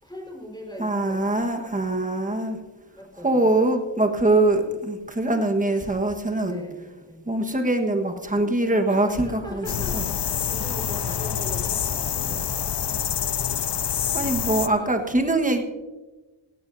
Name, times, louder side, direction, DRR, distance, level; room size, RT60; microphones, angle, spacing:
voice 1, 0.0-1.2 1.6-1.8 3.0-3.5 6.4-7.2 8.9-12.5 14.8-15.1, left 1 dB, 10° left, -1 dB, 4.6 m, -41 dB
voice 2, 0.8-2.6 3.2-6.6 7.3-9.7 9.9-10.0 14.1-15.6, right 2 dB, 15° right, 4 dB, 1.4 m, -23 dB
sound 1, 9.7-14.7, left 8 dB, 55° left, 0.7 m, -26 dB
17.0 x 16.5 x 2.7 m, 1.2 s
wide cardioid pair, 100°, 49 cm